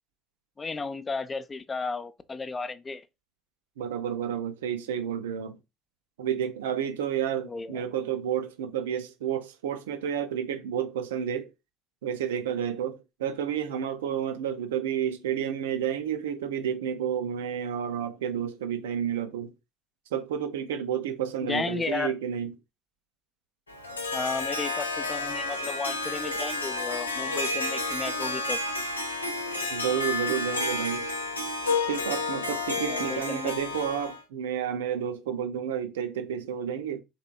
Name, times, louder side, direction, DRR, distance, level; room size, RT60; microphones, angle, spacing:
voice 1, 0.6-3.0 7.5-7.8 21.4-22.1 24.1-28.6 32.9-33.5, left 4 dB, 25° left, 0.4 m, -33 dB
voice 2, 3.8-5.6 6.2-11.5 12.0-19.5 20.1-22.5 29.7-31.1 31.8-37.0, right 9 dB, 75° right, 0.4 m, -30 dB
Harp, 23.7-34.2, left 3 dB, 85° left, 0.4 m, -31 dB
3.4 x 2.8 x 2.2 m
figure-of-eight pair, 55°, 0 cm